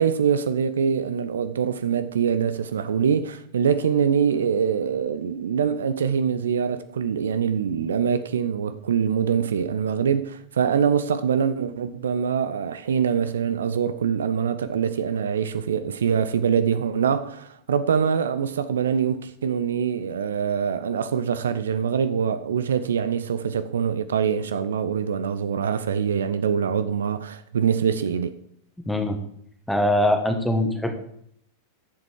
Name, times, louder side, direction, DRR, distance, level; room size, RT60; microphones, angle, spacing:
voice 1, 0.0-28.4, right 7 dB, 65° right, 0.5 m, -24 dB
voice 2, 28.9-29.2 29.7-31.0, left 1 dB, 5° left, 1.5 m, -22 dB
11.0 x 7.5 x 4.7 m
figure-of-eight pair, 90°, 0 cm